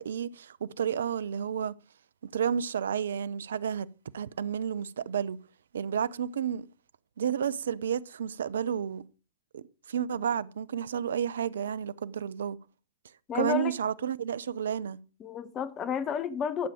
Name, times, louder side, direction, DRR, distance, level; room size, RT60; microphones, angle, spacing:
voice 1, 0.0-1.7 2.3-3.9 4.1-5.4 5.7-6.7 7.2-9.0 9.5-9.6 9.9-12.6 13.3-15.0, right 8 dB, 70° right, 0.6 m, -31 dB
voice 2, 13.3-13.7 15.2-16.7, left 7 dB, 30° left, 1.1 m, -31 dB
12.0 x 7.5 x 5.0 m
figure-of-eight pair, 105°, 0 cm